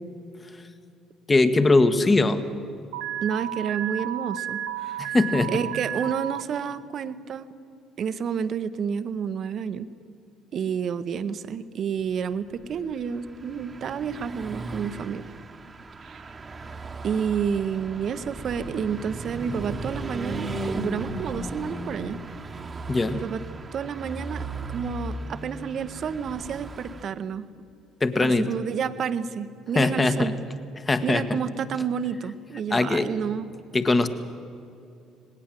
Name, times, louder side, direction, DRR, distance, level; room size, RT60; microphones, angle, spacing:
voice 1, 1.3-2.4 5.0-5.5 22.9-23.2 28.0-28.5 29.7-30.3 30.9-31.2 32.7-33.1 33.7-34.1, left 3 dB, 25° left, 10 dB, 1.5 m, -21 dB
Alarm, 2.9-6.4, right 11 dB, 80° right, 1.0 m, -32 dB
voice 2, 3.2-5.1 5.5-7.5 8.0-9.9 10.5-15.3 16.0-16.4 17.0-22.2 23.1-23.4 23.7-27.5 28.2-30.3 31.0-33.5, right 7 dB, 55° right, 13 dB, 0.9 m, -30 dB
Car passing by / Truck, 12.7-27.1, right 2 dB, 35° right, 1.2 m, -36 dB
19.0 x 17.5 x 7.7 m, 2.5 s
hypercardioid pair, 55°, 0 cm